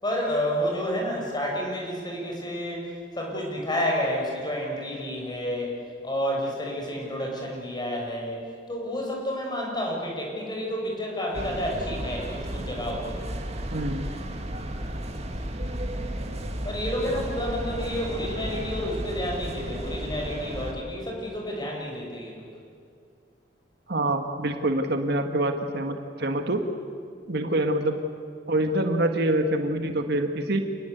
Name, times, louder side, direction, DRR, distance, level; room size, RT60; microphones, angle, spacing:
voice 1, 0.0-2.9 3.1-5.7 6.0-8.4 8.7-13.2 16.6-22.5, equal, 25° left, -1 dB, 6.3 m, -30 dB
sound 1, 11.3-20.7, right 1 dB, 35° right, 2.2 m, -33 dB
voice 2, 13.7-14.1 17.0-17.2 23.9-26.6 27.3-28.0 28.5-30.6, right 1 dB, 65° right, 5 dB, 1.8 m, -26 dB
28.0 x 21.0 x 8.2 m, 2.3 s
head